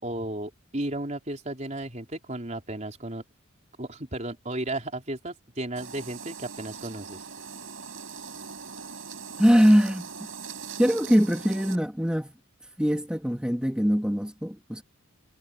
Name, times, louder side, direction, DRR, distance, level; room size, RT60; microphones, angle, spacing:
voice 1, 0.0-3.2 3.8-7.3, right 1 dB, 35° right, 4.1 m, -34 dB
sound 1, 5.8-11.8, right 6 dB, 70° right, 6.1 m, -41 dB
voice 2, 9.4-10.1 10.8-12.3 12.8-14.8, equal, 5° right, 1.8 m, -22 dB
head